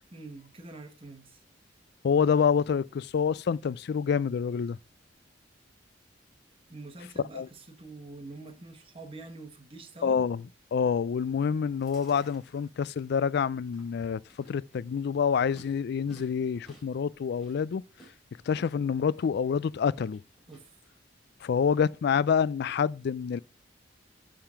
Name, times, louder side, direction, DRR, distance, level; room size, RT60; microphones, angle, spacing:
voice 1, 0.1-1.4 6.7-10.2 20.5-20.8, right 2 dB, 30° right, 1.3 m, -46 dB
voice 2, 2.0-4.8 7.3-7.5 10.0-10.4 10.7-17.8 18.5-20.2 21.4-23.4, left 6 dB, 60° left, 0.3 m, -27 dB
Chewing mastication, 11.7-20.6, right 1 dB, ahead, 5.4 m, -57 dB
11.5 x 3.8 x 5.7 m
head